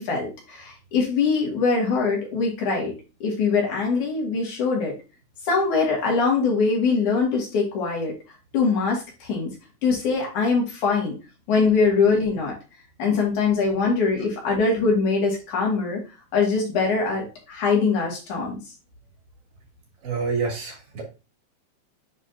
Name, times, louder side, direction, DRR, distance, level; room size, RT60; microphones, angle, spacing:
voice 1, 0.0-5.0 5.5-8.1 8.5-9.5 9.8-11.2 11.5-12.6 13.0-16.0 16.3-18.6, left 4 dB, 85° left, -2 dB, 3.7 m, -23 dB
voice 2, 20.0-21.0, right 4 dB, 75° right, -1 dB, 4.1 m, -27 dB
9.1 x 3.9 x 2.8 m, 0.30 s
omnidirectional pair, 3.4 m